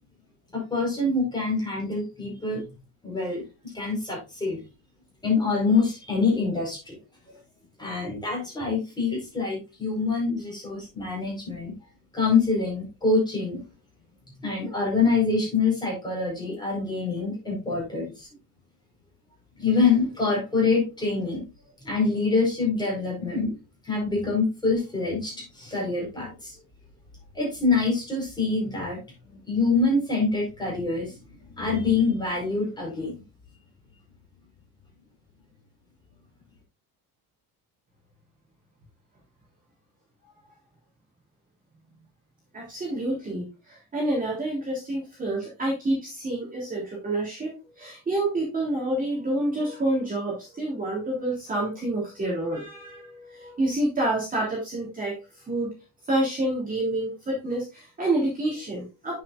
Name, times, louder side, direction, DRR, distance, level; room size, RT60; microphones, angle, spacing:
voice 1, 0.5-2.6 3.0-3.4 3.7-4.6 5.2-7.0 7.3-7.4 7.8-11.7 12.1-13.6 14.4-18.3 19.6-21.4 21.8-23.6 23.8-26.6 27.3-29.0 29.5-31.1 31.6-33.1, left 4 dB, 10° left, -2 dB, 4.6 m, -25 dB
voice 2, 42.5-55.2 55.5-55.7 56.1-59.2, right 1 dB, 20° right, -4 dB, 3.1 m, -28 dB
8.4 x 7.5 x 2.5 m, 0.27 s
cardioid pair, 170°, 40 cm